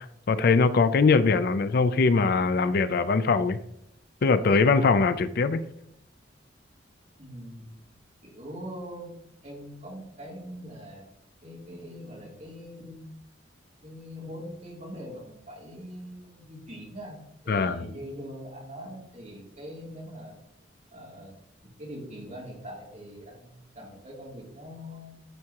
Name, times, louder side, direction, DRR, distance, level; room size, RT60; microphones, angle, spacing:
voice 1, 0.0-3.6 4.2-5.6 17.5-17.9, left 4 dB, 55° left, 12 dB, 0.4 m, -22 dB
voice 2, 7.2-7.8 8.2-9.1 9.4-11.0 11.4-13.1 13.8-17.2 17.4-20.3 20.9-21.3 21.6-25.2, equal, 40° right, -5 dB, 3.2 m, -42 dB
12.5 x 4.7 x 2.9 m, 0.77 s
head